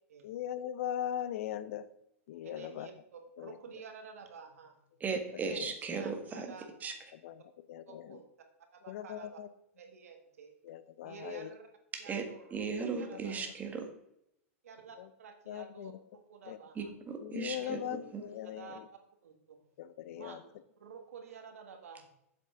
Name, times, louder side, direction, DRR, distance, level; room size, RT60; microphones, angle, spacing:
voice 1, 0.2-1.9 2.3-2.9 3.4-3.6 5.4-5.7 7.2-8.2 8.9-9.5 10.6-11.5 13.1-13.4 15.0-15.1 15.5-16.0 16.4-16.6 17.2-18.9 19.8-20.4, left 11 dB, 65° left, 14 dB, 0.6 m, -40 dB
voice 2, 2.4-4.9 5.4-6.7 7.9-8.2 8.7-9.4 9.8-10.5 11.0-11.7 12.0-13.5 14.6-16.9 17.5-17.8 18.4-18.8 19.2-19.6 20.1-20.5 20.8-22.1, right 6 dB, 85° right, 5 dB, 1.8 m, -51 dB
voice 3, 5.0-6.5 6.8-6.9 11.9-12.2 12.5-13.9 16.7-18.2, right 5 dB, 20° right, 5 dB, 1.6 m, -37 dB
7.8 x 7.6 x 3.7 m, 0.80 s
hypercardioid pair, 120°, 8 cm